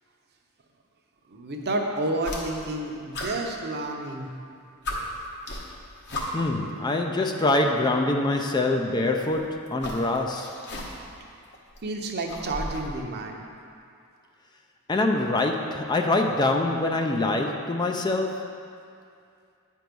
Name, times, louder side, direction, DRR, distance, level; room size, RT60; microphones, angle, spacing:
voice 1, 1.3-4.3 11.8-13.4, right 2 dB, 50° right, 2 dB, 0.8 m, -30 dB
sound 1, 2.2-2.8 3.1-4.2 4.5-4.6 4.8-6.6 7.7-7.8 9.1-11.2 11.5-13.0, left 1 dB, 50° left, 1.1 m, -35 dB
voice 2, 6.3-10.6 14.9-18.6, left 2 dB, 20° left, 4 dB, 0.3 m, -25 dB
9.2 x 4.6 x 5.3 m, 2.4 s
head